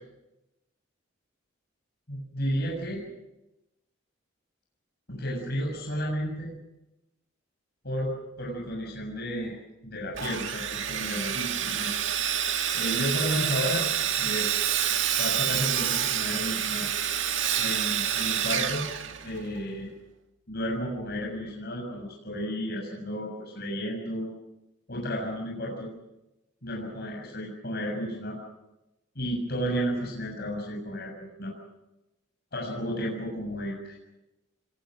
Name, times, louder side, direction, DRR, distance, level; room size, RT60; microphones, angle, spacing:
voice 1, 2.1-3.1 5.1-6.6 7.8-9.6 9.8-11.9 12.7-14.5 15.2-16.9 17.6-18.9 19.2-19.9 20.5-24.3 24.9-25.9 26.6-28.4 29.2-31.5 32.5-34.0, equal, 50° left, -1 dB, 7.0 m, -32 dB
Sawing, 10.1-19.6, right 9 dB, 60° right, 2.1 m, -28 dB
28.0 x 22.5 x 6.3 m, 0.95 s
head